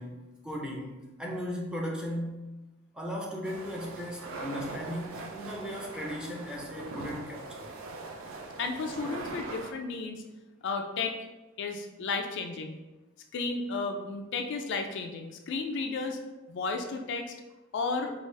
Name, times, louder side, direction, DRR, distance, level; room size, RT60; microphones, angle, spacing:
voice 1, 0.0-2.5 2.9-7.7, equal, 5° right, -2 dB, 0.6 m, -37 dB
sound 1, 3.4-9.7, right 3 dB, 70° right, 0.5 m, -41 dB
voice 2, 8.6-10.2 10.6-11.1 11.6-12.8 13.3-16.2 16.5-17.3 17.7-18.1, left 4 dB, 60° left, 4 dB, 0.4 m, -33 dB
4.7 x 2.4 x 3.2 m, 1.1 s
head